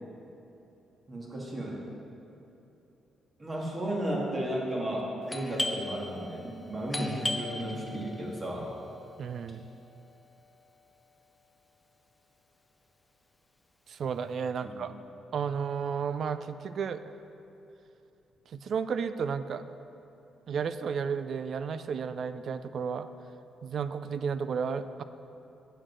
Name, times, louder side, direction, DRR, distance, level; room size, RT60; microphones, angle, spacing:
voice 1, 1.1-1.8 3.4-8.7 14.6-14.8, right 1 dB, 30° right, -3 dB, 2.1 m, -34 dB
Doorbell, 5.3-10.7, left 1 dB, 10° left, 0.7 m, -38 dB
voice 2, 9.2-9.6 13.9-14.9 15.3-17.0 18.5-19.6 20.5-23.1 23.6-25.0, right 6 dB, 55° right, 12 dB, 0.4 m, -32 dB
8.8 x 7.8 x 6.2 m, 2.8 s
cardioid pair, 120°, 0 cm